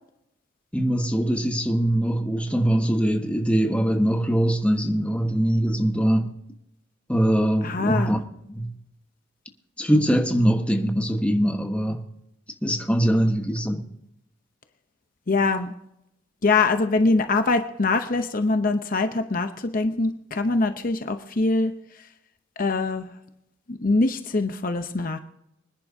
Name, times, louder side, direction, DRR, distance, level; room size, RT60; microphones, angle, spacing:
voice 1, 0.7-6.3 7.1-8.2 8.5-8.7 9.8-12.0 12.6-13.8, equal, 5° left, 1.2 m, -22 dB
voice 2, 7.6-8.1 15.3-15.7 16.4-21.7 22.6-23.1 23.7-25.2, left 3 dB, 45° left, 0.7 m, -23 dB
25.0 x 10.5 x 2.7 m
head